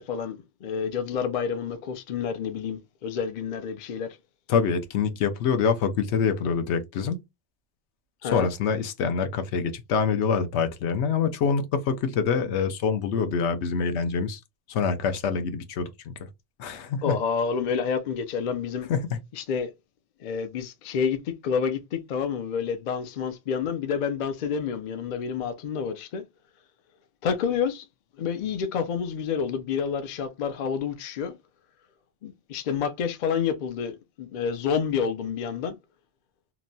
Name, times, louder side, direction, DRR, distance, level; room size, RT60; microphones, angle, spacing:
voice 1, 0.0-4.2 8.2-8.5 17.0-18.9 19.3-19.7 20.2-26.2 27.2-27.9 28.2-31.3 32.2-35.8, left 6 dB, 60° left, 0.5 m, -29 dB
voice 2, 4.5-7.2 8.2-14.4 14.7-16.3 16.6-17.2 18.9-19.2, left 6 dB, 75° left, 0.9 m, -25 dB
3.0 x 2.2 x 2.6 m
omnidirectional pair, 1.2 m